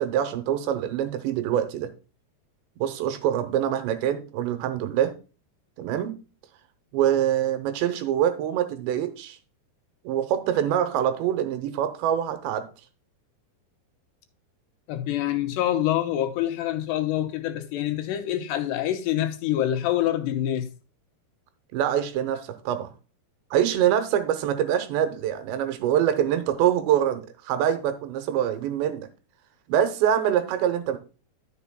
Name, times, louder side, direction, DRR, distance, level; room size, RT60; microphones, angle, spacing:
voice 1, 0.0-1.9 2.8-5.1 5.8-6.1 6.9-9.4 10.0-12.7 21.7-22.9 23.5-29.1 29.7-31.0, right 10 dB, 80° right, 3.1 m, -25 dB
voice 2, 14.9-20.7, left 12 dB, 80° left, 2.8 m, -26 dB
12.0 x 6.8 x 2.2 m
omnidirectional pair, 5.1 m